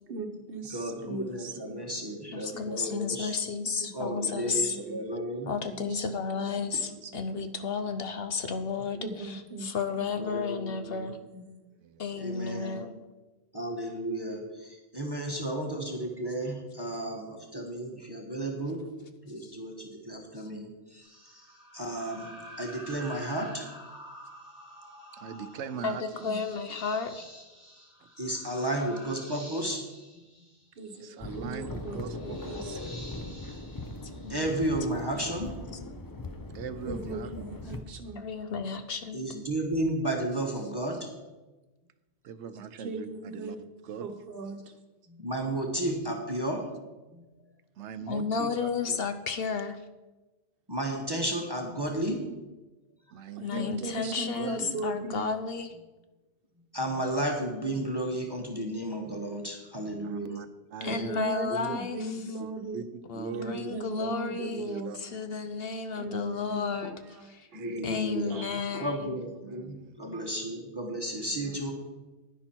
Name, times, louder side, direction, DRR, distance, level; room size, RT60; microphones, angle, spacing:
voice 1, 0.1-1.8 2.8-3.2 3.8-4.2 4.9-5.0 5.7-7.7 9.0-10.1 11.3-11.6 26.1-26.4 30.8-32.8 36.9-38.2 42.8-43.7 44.0-44.6 48.1-48.4 53.4-55.3 60.8-62.8 63.3-64.9 66.0-66.9 67.5-67.6 68.3-68.9, right 2 dB, 55° right, 3 dB, 1.2 m, -38 dB
voice 2, 0.7-3.3 3.9-5.5 8.6-8.7 10.2-11.1 12.2-12.8 13.5-18.8 19.2-21.1 21.7-23.7 28.2-29.9 30.1-30.2 34.3-35.7 39.1-41.1 45.1-46.7 47.1-47.3 50.7-52.3 53.2-53.3 56.7-60.3 67.5-68.4 68.8-71.7, right 1 dB, 20° right, 0 dB, 1.3 m, -33 dB
voice 3, 1.8-2.2 5.1-5.2 8.4-8.5 11.8-12.3 25.1-26.0 28.0-28.1 30.9-32.5 36.5-37.3 37.6-37.7 42.2-43.6 43.8-44.1 47.8-49.1 53.1-54.8 60.0-61.8 62.4-62.5 62.7-63.7 64.0-64.1 64.5-65.0 67.5-67.9 69.4-69.9 71.3-71.6, right 7 dB, 80° right, 12 dB, 1.0 m, -42 dB
voice 4, 2.3-4.6 5.5-11.2 12.0-13.0 25.8-26.0 26.2-27.3 34.2-34.4 38.1-39.2 48.1-49.8 53.4-55.7 60.8-62.2 63.1-67.5 67.8-69.1, left 5 dB, 60° left, 9 dB, 0.9 m, -33 dB
sound 1, 21.0-34.9, equal, 5° right, 4.6 m, -49 dB
sound 2, 31.2-37.8, left 2 dB, 25° left, 0.6 m, -40 dB
10.5 x 10.0 x 4.4 m, 1.2 s
omnidirectional pair, 1.2 m